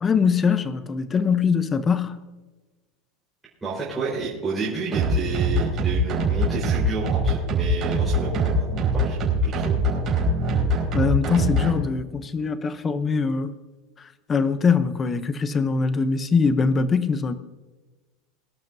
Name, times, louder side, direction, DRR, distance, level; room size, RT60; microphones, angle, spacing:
voice 1, 0.0-2.2 10.9-13.5 14.3-17.4, left 5 dB, 15° left, 0.7 m, -22 dB
voice 2, 3.6-9.2 9.4-9.8, right 4 dB, 10° right, 4.4 m, -30 dB
sound 1, 4.9-11.7, right 1 dB, 30° right, 4.8 m, -23 dB
23.0 x 12.0 x 2.7 m
supercardioid pair, 170°, 0 cm